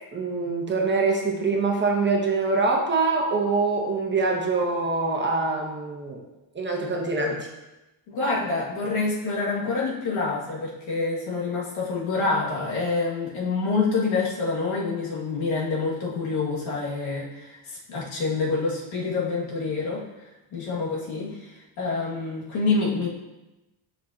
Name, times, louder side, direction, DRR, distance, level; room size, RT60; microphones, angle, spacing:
voice 1, 0.1-6.2 6.5-7.4, right 3 dB, 25° right, 0 dB, 1.0 m, -24 dB
voice 2, 8.1-20.1 20.5-23.1, left 4 dB, 80° left, -5 dB, 2.1 m, -27 dB
7.3 x 5.6 x 2.8 m, 1.0 s
cardioid pair, 130°, 48 cm